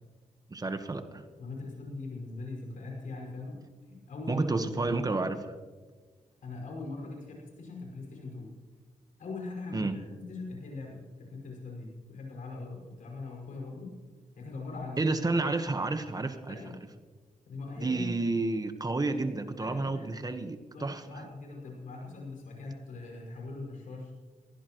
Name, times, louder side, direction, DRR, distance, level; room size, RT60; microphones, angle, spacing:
voice 1, 0.5-1.2 4.3-5.5 9.7-9.9 15.0-16.6 17.8-21.3, right 3 dB, 30° right, 8 dB, 1.3 m, -30 dB
voice 2, 1.4-3.6 3.9-5.2 6.4-8.5 9.2-13.9 14.4-15.0 16.5-16.8 17.5-18.1 19.6-20.1 20.7-24.1, left 3 dB, 75° left, -1 dB, 5.8 m, -41 dB
22.0 x 16.5 x 3.1 m, 1.4 s
cardioid pair, 80°, 13 cm